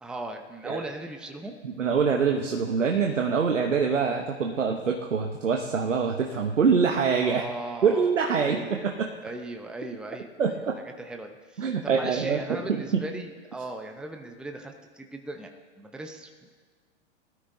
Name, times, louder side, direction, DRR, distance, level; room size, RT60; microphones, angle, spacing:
voice 1, 0.0-1.6 7.2-8.9 9.2-10.7 11.0-16.3, right 2 dB, ahead, 4 dB, 0.8 m, -38 dB
voice 2, 1.6-7.4 7.8-9.1 10.4-10.8 11.6-13.0, right 6 dB, 90° right, 2 dB, 1.0 m, -25 dB
19.5 x 13.0 x 2.7 m, 1.5 s
hypercardioid pair, 100°, 36 cm